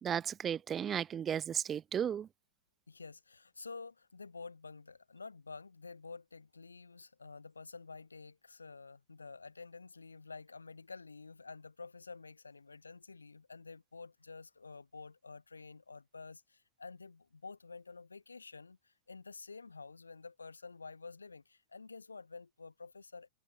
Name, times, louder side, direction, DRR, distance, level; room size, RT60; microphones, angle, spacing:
voice 1, 0.0-2.3, right 8 dB, 25° right, 0.5 m, -34 dB
voice 2, 2.9-23.3, left 4 dB, 80° left, 1.7 m, -50 dB
figure-of-eight pair, 90°, 0 cm